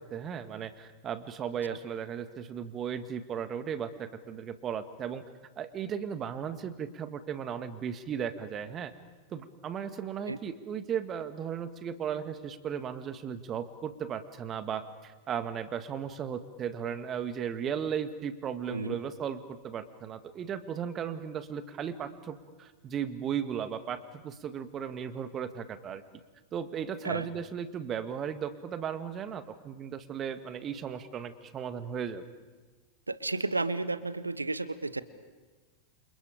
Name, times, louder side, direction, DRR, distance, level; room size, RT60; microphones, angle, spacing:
voice 1, 0.0-5.2 5.6-8.9 9.3-26.0 26.5-32.2, right 8 dB, 30° right, 11 dB, 1.7 m, -36 dB
voice 2, 33.1-35.0, right 3 dB, 80° right, 16 dB, 1.0 m, -32 dB
30.0 x 28.0 x 5.1 m, 1.3 s
figure-of-eight pair, 90°, 0 cm